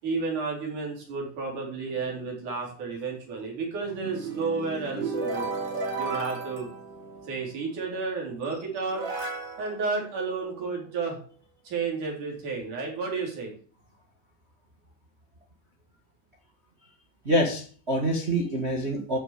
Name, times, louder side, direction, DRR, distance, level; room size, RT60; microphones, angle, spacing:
voice 1, 0.0-5.5 5.9-6.7 7.3-9.1 9.6-11.2 11.6-13.5, right 4 dB, 70° right, -1 dB, 5.8 m, -32 dB
sound 1, 3.8-7.6 8.4-8.5 8.9-10.8, right 4 dB, 50° right, 3.3 m, -34 dB
voice 2, 17.2-19.2, equal, 25° right, 2 dB, 1.6 m, -26 dB
13.5 x 6.8 x 7.0 m, 0.43 s
omnidirectional pair, 3.6 m